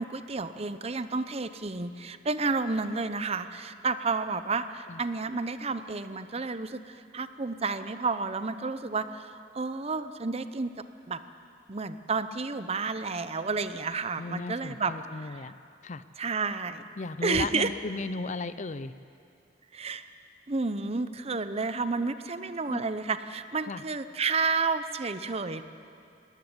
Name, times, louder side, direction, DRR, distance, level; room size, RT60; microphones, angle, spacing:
voice 1, 0.0-10.7 11.1-11.2 11.7-15.5 16.2-16.8 17.2-17.7 19.7-20.1 20.5-25.6, right 4 dB, 35° right, 11 dB, 0.8 m, -31 dB
voice 2, 14.2-15.5 15.8-16.0 17.0-18.9 22.7-22.9 23.7-23.8, left 3 dB, 40° left, 14 dB, 0.6 m, -35 dB
19.5 x 17.5 x 9.7 m, 2.5 s
head